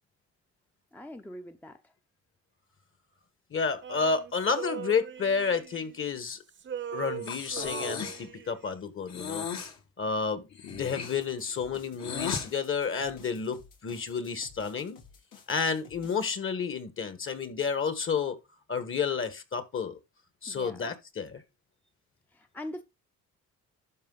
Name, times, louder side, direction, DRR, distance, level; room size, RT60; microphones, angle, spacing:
voice 1, 0.9-1.9 20.5-21.0 22.3-22.8, left 1 dB, 5° left, 0.6 m, -42 dB
voice 2, 3.5-6.4 6.9-9.5 10.0-15.0 15.5-18.4 18.7-20.0 20.4-21.4, left 5 dB, 45° left, 1.6 m, -31 dB
Male singing, 3.8-6.3 6.5-8.7, right 8 dB, 40° right, 0.8 m, -40 dB
Breathing, 7.2-8.3 9.1-9.8 10.5-12.5, left 7 dB, 65° left, 1.9 m, -36 dB
sound 1, 10.7-16.3, left 6 dB, 85° left, 3.1 m, -54 dB
12.0 x 4.6 x 4.0 m
cardioid pair, 90°, 30 cm